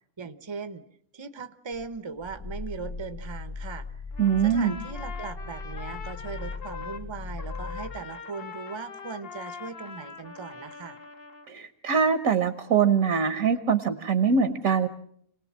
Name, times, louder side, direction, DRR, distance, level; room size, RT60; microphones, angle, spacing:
voice 1, 0.2-0.8 1.1-3.9 4.4-11.0, right 5 dB, 25° right, 11 dB, 0.8 m, -39 dB
Growling, 1.7-8.1, left 3 dB, 25° left, 1.3 m, -38 dB
Trumpet, 4.1-7.1 7.4-11.5, left 5 dB, 45° left, 1.2 m, -42 dB
voice 2, 4.2-4.8 11.5-14.9, right 6 dB, 70° right, 9 dB, 1.5 m, -23 dB
27.5 x 18.5 x 7.4 m, 0.68 s
omnidirectional pair, 1.5 m